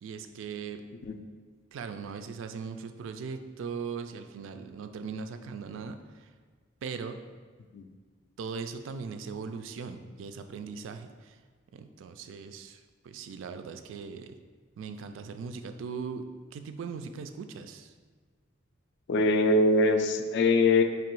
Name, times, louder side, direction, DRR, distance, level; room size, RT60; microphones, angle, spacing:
voice 1, 0.0-0.8 1.7-6.0 6.8-7.2 8.4-11.3 11.7-12.8 13.0-14.4 14.8-17.9, right 5 dB, 75° right, 8 dB, 0.3 m, -39 dB
voice 2, 19.1-20.8, left 2 dB, 60° left, 7 dB, 0.3 m, -23 dB
3.1 x 2.9 x 4.6 m, 1.5 s
head